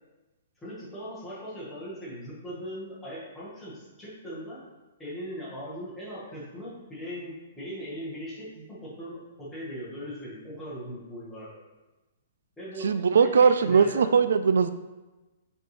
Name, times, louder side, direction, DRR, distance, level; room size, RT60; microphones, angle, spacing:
voice 1, 0.6-4.6 5.0-11.5 12.6-14.1, equal, 5° left, -10 dB, 1.5 m, -39 dB
voice 2, 12.8-14.7, right 6 dB, 80° right, 11 dB, 0.3 m, -20 dB
7.6 x 4.2 x 3.2 m, 1.1 s
hypercardioid pair, 180°, 0 cm